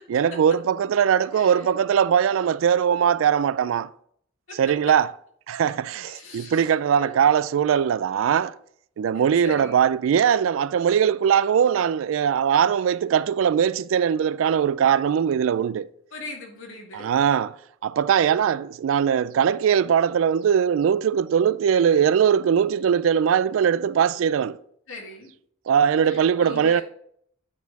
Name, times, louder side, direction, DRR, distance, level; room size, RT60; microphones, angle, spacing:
voice 1, 0.1-3.9 4.6-5.1 5.5-8.6 9.0-15.9 16.9-17.6 17.8-24.6 25.7-26.8, right 8 dB, 75° right, 0.3 m, -21 dB
voice 2, 1.3-1.7 4.5-4.6 6.0-7.1 9.1-9.8 16.1-17.1 24.9-25.3 26.0-26.8, left 2 dB, 80° left, 2.0 m, -40 dB
9.4 x 4.2 x 4.0 m
head